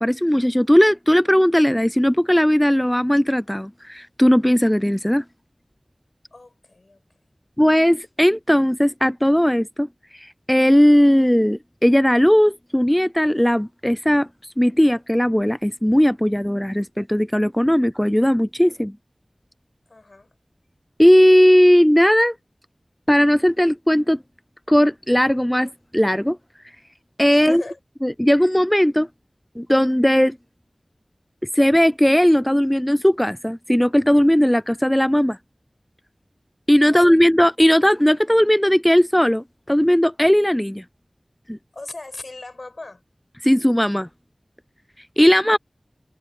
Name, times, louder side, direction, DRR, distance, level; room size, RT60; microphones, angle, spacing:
voice 1, 0.0-5.2 7.6-18.9 21.0-22.3 23.1-24.2 24.7-26.4 27.2-27.6 28.0-29.1 29.6-30.4 31.5-35.4 36.7-40.8 41.5-41.6 43.4-44.1 45.2-45.6, equal, 10° left, 0.4 m, -17 dB
voice 2, 6.3-7.0 19.9-20.3 27.3-27.8 36.9-37.4 41.7-43.0, left 2 dB, 70° left, 5.4 m, -38 dB
wide cardioid pair, 50°, 0 cm